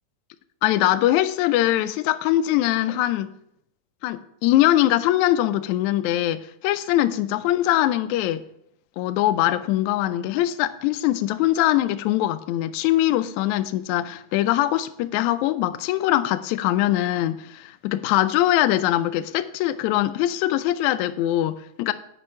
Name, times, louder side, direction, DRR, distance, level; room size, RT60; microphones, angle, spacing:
voice 1, 0.6-3.3 4.0-8.5 9.0-21.9, left 14 dB, 80° left, 1.7 m, -22 dB
7.3 x 6.0 x 7.5 m
omnidirectional pair, 3.8 m